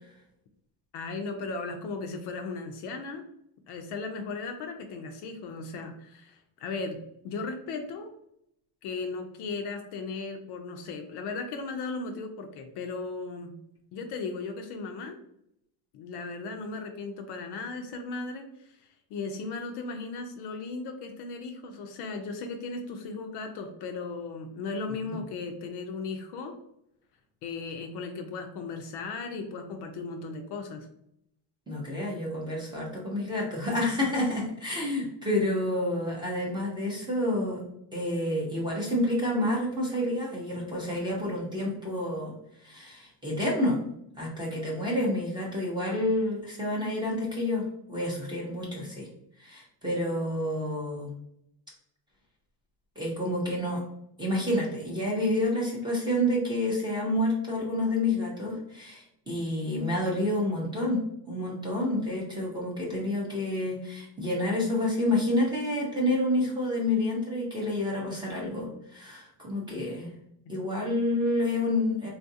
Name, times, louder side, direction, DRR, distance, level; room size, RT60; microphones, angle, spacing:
voice 1, 0.9-3.3 3.7-8.1 8.8-13.6 13.9-15.2 15.9-18.8 19.1-26.6 27.4-30.9 70.5-70.6, left 4 dB, 55° left, 5 dB, 0.5 m, -36 dB
voice 2, 31.7-37.6 37.9-42.3 42.6-43.8 44.2-49.1 49.4-51.1 53.0-53.8 54.2-70.1 70.5-72.1, left 1 dB, 10° right, -4 dB, 0.6 m, -29 dB
3.8 x 2.4 x 2.6 m, 0.75 s
cardioid pair, 175°, 49 cm